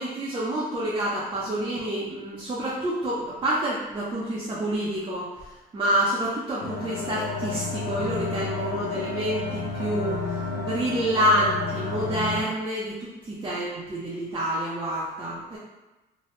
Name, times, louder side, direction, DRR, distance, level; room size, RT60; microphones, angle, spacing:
voice 1, 0.0-5.3 5.7-10.2 10.6-15.6, right 1 dB, 25° right, -7 dB, 0.6 m, -28 dB
sound 1, 6.6-12.4, left 4 dB, 85° left, 0.6 m, -31 dB
2.9 x 2.2 x 3.1 m, 1.1 s
cardioid pair, 110°, 17 cm